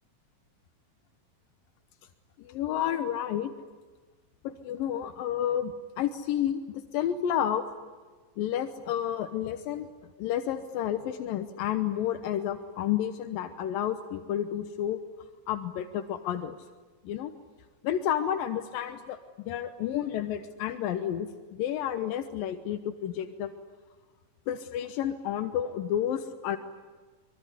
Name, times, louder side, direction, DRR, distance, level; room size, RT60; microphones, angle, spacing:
voice 1, 2.4-3.5 4.4-7.6 8.4-9.9 10.2-15.0 15.5-16.6 17.0-17.3 17.8-19.2 19.5-23.5 24.5-26.6, left 10 dB, 85° left, 8 dB, 2.8 m, -30 dB
24.5 x 23.5 x 9.9 m, 1.4 s
omnidirectional pair, 4.0 m